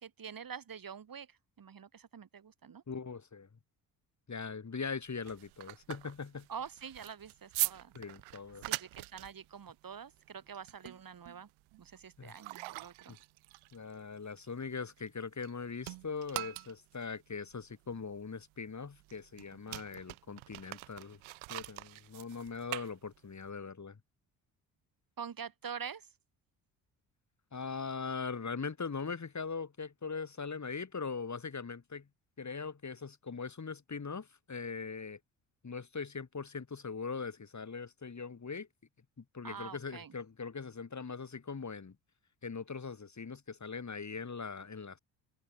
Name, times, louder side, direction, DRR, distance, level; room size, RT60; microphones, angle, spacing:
voice 1, 0.0-2.8 6.5-7.9 8.6-11.5 11.8-13.2 25.2-26.1 39.4-40.1, right 7 dB, 45° right, 3.2 m, -46 dB
voice 2, 2.9-3.5 4.3-6.5 7.9-8.6 12.2-12.4 13.1-13.2 13.7-21.2 21.5-24.0 27.5-32.1 32.4-35.2 35.6-38.7 39.2-42.0 42.4-45.0, left 5 dB, 35° left, 6.4 m, -41 dB
sound 1, 5.0-15.5 15.8-23.5, right 21 dB, 80° right, 4.7 m, -43 dB
hypercardioid pair, 50°, 47 cm